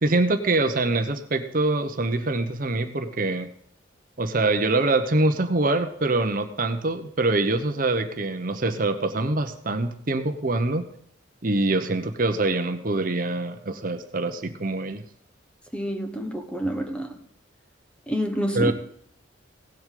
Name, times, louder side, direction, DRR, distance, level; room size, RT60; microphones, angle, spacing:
voice 1, 0.0-3.5 4.2-10.8 11.4-15.0 18.5-18.7, right 2 dB, 45° right, 8 dB, 0.9 m, -24 dB
voice 2, 15.7-17.2 18.1-18.7, equal, 5° left, 5 dB, 1.0 m, -28 dB
17.5 x 7.8 x 3.8 m, 0.66 s
head